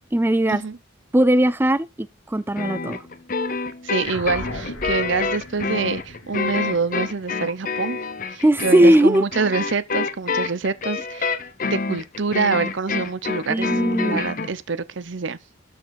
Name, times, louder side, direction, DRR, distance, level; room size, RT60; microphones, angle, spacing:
voice 1, 0.1-0.6 1.1-3.0 8.4-9.2 13.5-14.2, right 1 dB, 10° right, 0.4 m, -18 dB
sound 1, 2.6-14.5, left 4 dB, 40° left, 0.9 m, -27 dB
voice 2, 3.8-8.0 8.3-11.3 11.6-15.4, right 4 dB, 65° right, 0.6 m, -26 dB
sound 2, 4.0-8.8, left 2 dB, 75° left, 3.2 m, -38 dB
12.5 x 4.6 x 4.7 m
head